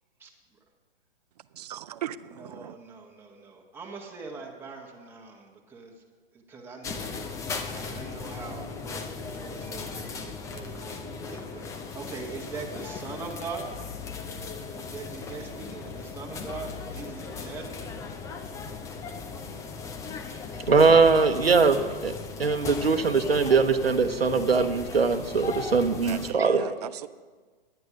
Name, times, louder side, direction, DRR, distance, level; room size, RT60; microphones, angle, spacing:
voice 1, 1.5-2.8 26.0-27.1, right 11 dB, 45° right, 15 dB, 0.5 m, -37 dB
voice 2, 2.3-6.0 6.3-9.0 9.3-13.8 14.8-17.9, right 4 dB, 5° right, -2 dB, 1.4 m, -42 dB
sound 1, 6.8-26.3, left 4 dB, 10° left, 0.5 m, -37 dB
voice 3, 20.7-22.1 22.4-26.8, right 4 dB, 85° right, 9 dB, 1.0 m, -21 dB
10.0 x 9.3 x 5.9 m, 1.4 s
figure-of-eight pair, 115°, 29 cm